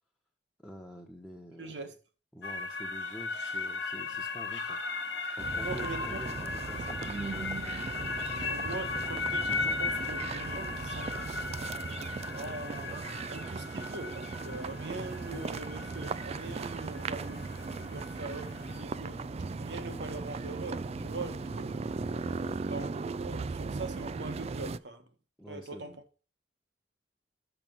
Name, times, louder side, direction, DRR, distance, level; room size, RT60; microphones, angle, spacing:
voice 1, 0.6-1.8 2.3-4.8 5.4-7.5 8.3-8.5 22.3-22.6 25.4-26.0, equal, ahead, 1.0 m, -47 dB
voice 2, 1.6-1.9 5.6-6.3 7.9-8.2 8.4-11.6 12.3-19.2 19.6-21.7 22.7-22.9 23.2-25.1 25.5-25.9, right 3 dB, 75° right, 1.4 m, -42 dB
sound 1, 2.4-18.8, left 4 dB, 70° left, 1.0 m, -37 dB
sound 2, 5.4-24.8, right 4 dB, 35° right, 0.3 m, -38 dB
sound 3, 14.4-22.6, left 1 dB, 30° left, 1.0 m, -50 dB
6.0 x 5.9 x 5.4 m
head